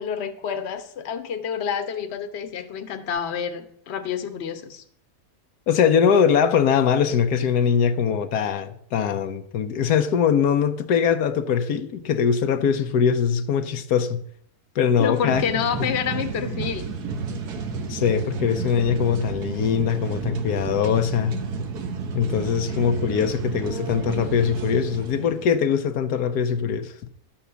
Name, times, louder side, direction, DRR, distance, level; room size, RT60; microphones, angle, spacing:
voice 1, 0.0-4.8 15.0-16.9, left 7 dB, 50° left, 1.2 m, -28 dB
voice 2, 5.7-14.2 14.7-15.4 17.9-21.4 22.1-26.9, left 7 dB, 85° left, 1.3 m, -22 dB
sound 1, 15.3-25.5, right 5 dB, 85° right, 1.7 m, -31 dB
11.5 x 7.2 x 6.8 m
omnidirectional pair, 1.6 m